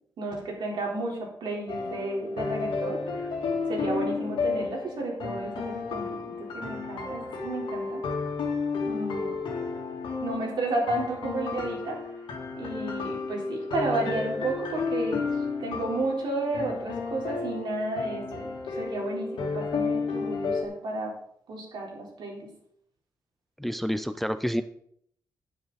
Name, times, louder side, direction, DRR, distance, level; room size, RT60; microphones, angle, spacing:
voice 1, 0.2-3.3 3.7-8.0 8.8-9.4 10.2-12.0 12.6-15.3 15.6-21.1 21.5-22.5, right 2 dB, 75° right, -2 dB, 3.8 m, -32 dB
sound 1, 1.7-20.6, left 4 dB, 90° left, 2.0 m, -32 dB
voice 2, 23.6-24.6, equal, ahead, 11 dB, 0.4 m, -28 dB
9.7 x 9.5 x 4.1 m, 0.67 s
wide cardioid pair, 150°, 8 cm